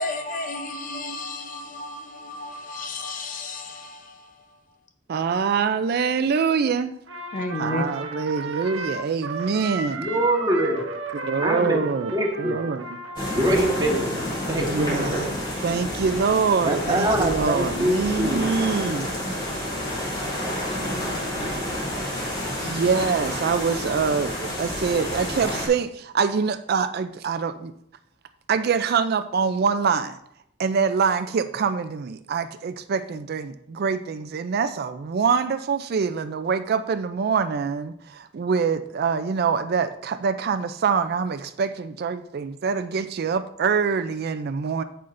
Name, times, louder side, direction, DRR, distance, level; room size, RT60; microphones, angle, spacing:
voice 1, 0.0-4.3 7.3-7.8, left 2 dB, 45° left, 7 dB, 0.7 m, -32 dB
voice 2, 5.1-6.9 7.6-10.0 11.3-12.9 14.5-15.4 15.6-19.1 22.6-27.7 28.5-30.2 30.6-44.8, right 5 dB, 55° right, 10 dB, 0.4 m, -25 dB
Trumpet, 7.1-14.6, right 3 dB, 85° right, 1.2 m, -35 dB
voice 3, 10.0-10.8 11.4-11.8 12.1-12.6 13.4-15.3 16.6-18.6 19.7-19.9 20.4-21.8, right 1 dB, 20° right, 1 dB, 1.4 m, -25 dB
sound 1, 13.2-25.7, left 1 dB, 25° left, 3.1 m, -29 dB
15.0 x 5.6 x 2.5 m, 0.74 s
head